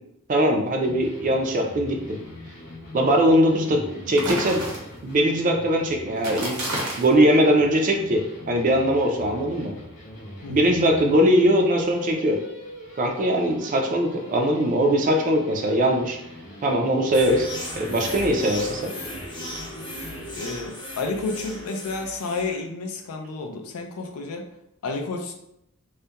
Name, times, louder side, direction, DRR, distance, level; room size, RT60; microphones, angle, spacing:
voice 1, 0.3-2.2 2.9-4.6 5.0-6.6 7.0-9.7 10.5-12.4 13.0-16.2 16.6-17.5 17.7-18.9, equal, 35° right, 2 dB, 0.3 m, -21 dB
sound 1, 0.8-20.4, left 1 dB, 60° left, 0.7 m, -42 dB
sound 2, 4.1-5.2 6.2-7.2, right 1 dB, 85° right, 0.9 m, -30 dB
voice 2, 10.4-10.8 20.3-24.5 24.8-25.3, left 3 dB, 85° left, 4 dB, 0.4 m, -31 dB
sound 3, 17.1-22.6, left 1 dB, 20° left, 0.5 m, -37 dB
2.3 x 2.1 x 2.8 m, 0.81 s
head